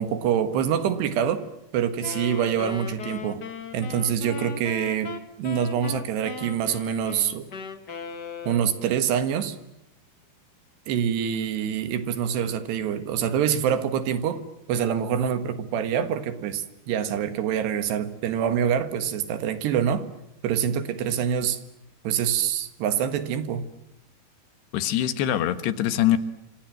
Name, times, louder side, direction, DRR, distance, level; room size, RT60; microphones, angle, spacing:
voice 1, 0.0-1.5 1.7-3.4 3.7-7.5 8.5-9.6 10.9-14.4 14.7-20.1 20.4-21.6 22.0-23.7, right 8 dB, 85° right, 3.8 m, -25 dB
Wind instrument woodwind instrument, 2.0-9.0, left 6 dB, 50° left, 1.2 m, -38 dB
voice 2, 24.7-26.2, left 12 dB, 85° left, 3.5 m, -23 dB
28.5 x 26.5 x 7.7 m
omnidirectional pair, 4.7 m